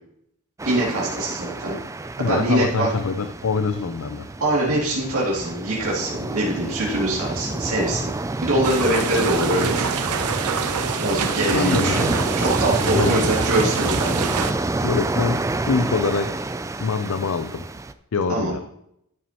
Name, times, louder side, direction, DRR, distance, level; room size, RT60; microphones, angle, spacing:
sound 1, 0.6-17.9, right 2 dB, 15° right, 0.3 m, -28 dB
voice 1, 0.6-1.7 2.3-2.9 4.4-8.1 8.4-9.9 11.0-12.1 12.4-14.2 18.3-18.5, right 1 dB, 65° right, -6 dB, 2.6 m, -23 dB
voice 2, 2.2-4.3 11.5-12.0 12.9-13.2 14.8-16.5 16.8-17.6 18.1-18.6, left 4 dB, 65° left, 9 dB, 0.5 m, -24 dB
sound 2, 8.6-14.5, right 6 dB, 85° right, 0.8 m, -26 dB
11.0 x 9.2 x 3.0 m, 0.74 s
head